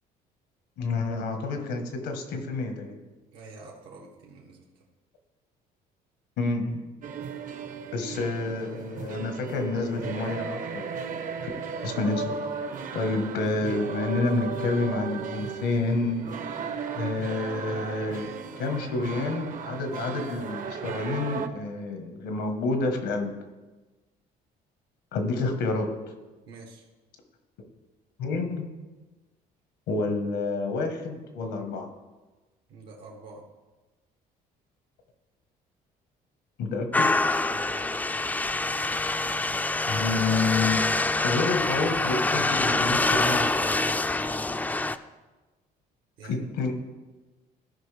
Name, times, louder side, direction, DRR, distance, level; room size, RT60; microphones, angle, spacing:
voice 1, 0.8-3.0 6.4-6.8 7.9-10.9 11.4-11.5 11.8-12.7 12.9-16.4 16.9-23.3 25.1-25.9 28.2-28.7 29.9-31.9 36.6-37.2 39.9-40.9 41.2-43.7 46.2-46.7, left 3 dB, 85° left, 5 dB, 1.3 m, -29 dB
voice 2, 3.3-4.6 26.5-26.9 32.7-33.5 37.5-37.9 46.2-46.5, right 3 dB, 85° right, 0 dB, 1.3 m, -46 dB
sound 1, 7.0-21.5, right 6 dB, 50° right, 0.7 m, -35 dB
sound 2, 36.9-45.0, left 2 dB, 10° left, 0.3 m, -25 dB
14.5 x 5.2 x 3.3 m, 1.2 s
cardioid pair, 110°, 17 cm